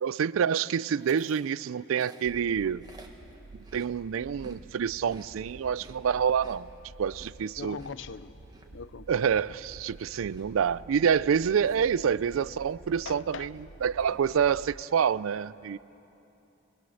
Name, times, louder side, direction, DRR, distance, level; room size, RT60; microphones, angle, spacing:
voice 1, 0.0-2.8 3.7-6.7 7.0-7.8 9.1-15.8, right 7 dB, 90° right, 0.4 m, -27 dB
Chewing mastication, 1.0-4.6 4.9-12.6 12.9-13.2 13.5-14.2, right 1 dB, 20° right, 1.3 m, -55 dB
sound 1, 2.2-14.8, right 3 dB, 45° right, 0.6 m, -50 dB
voice 2, 7.6-8.3 8.7-9.2 13.1-13.5, left 5 dB, 65° left, 0.6 m, -40 dB
21.0 x 20.0 x 6.5 m
head